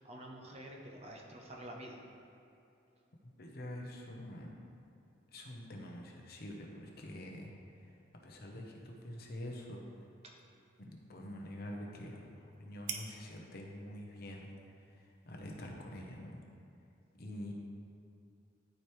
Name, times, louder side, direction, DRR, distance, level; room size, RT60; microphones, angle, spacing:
voice 1, 0.0-2.0 10.2-10.4, right 1 dB, 35° right, -1 dB, 0.9 m, -48 dB
voice 2, 3.4-4.6 5.3-7.5 7.8-7.9 8.2-9.8 10.8-14.5 15.0-16.4 17.2-17.5, left 1 dB, 55° left, 0 dB, 0.9 m, -46 dB
sound 1, 8.5-16.3, right 6 dB, 55° right, 0.7 m, -53 dB
12.5 x 4.6 x 3.3 m, 2.7 s
head